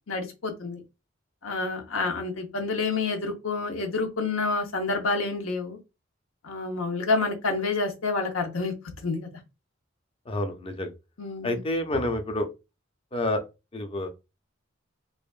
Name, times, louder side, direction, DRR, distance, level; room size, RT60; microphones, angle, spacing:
voice 1, 0.1-0.8 1.4-5.8 6.4-8.7 9.0-9.3 11.2-11.6, left 3 dB, 85° left, 0.9 m, -28 dB
voice 2, 10.3-10.9 11.4-12.5 13.1-13.4 13.7-14.1, left 1 dB, 30° left, 0.6 m, -28 dB
4.8 x 2.5 x 2.4 m
head